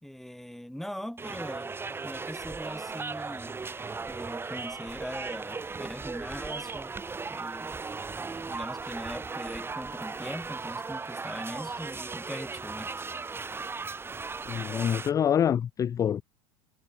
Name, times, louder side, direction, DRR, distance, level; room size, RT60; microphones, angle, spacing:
voice 1, 0.0-1.7 2.0-3.6 4.1-6.9 7.3-7.8 8.2-13.1, equal, ahead, 3.6 m, -41 dB
sound 1, 1.2-15.1, right 4 dB, 15° right, 0.9 m, -37 dB
voice 2, 14.5-16.2, left 9 dB, 25° left, 0.3 m, -26 dB
hypercardioid pair, 90°, 14 cm